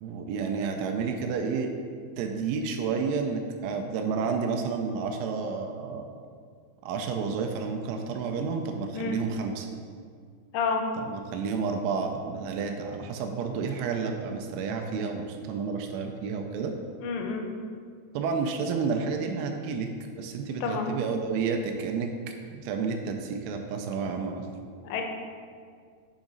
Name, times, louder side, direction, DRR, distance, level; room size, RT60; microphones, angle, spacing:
voice 1, 0.0-1.7 2.2-6.1 6.8-9.7 11.1-16.7 18.1-19.9 20.2-22.1 22.5-24.5, right 5 dB, 85° right, 4 dB, 2.9 m, -30 dB
voice 2, 17.0-17.5 20.6-20.9 24.8-25.0, left 5 dB, 85° left, 2 dB, 3.1 m, -29 dB
7.2 x 4.8 x 3.9 m, 2.1 s
omnidirectional pair, 5.4 m